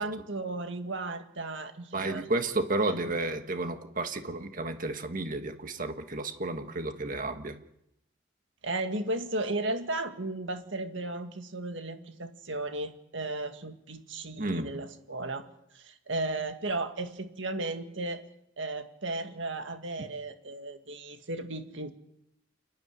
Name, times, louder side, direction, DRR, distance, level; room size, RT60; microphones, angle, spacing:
voice 1, 0.0-2.3 2.9-3.0 8.6-15.5 15.7-18.2 18.6-21.9, right 2 dB, 70° right, 7 dB, 2.0 m, -35 dB
voice 2, 1.9-7.6 14.4-14.7 20.0-20.1, right 2 dB, 45° right, 7 dB, 1.6 m, -32 dB
29.0 x 10.5 x 9.4 m, 0.80 s
head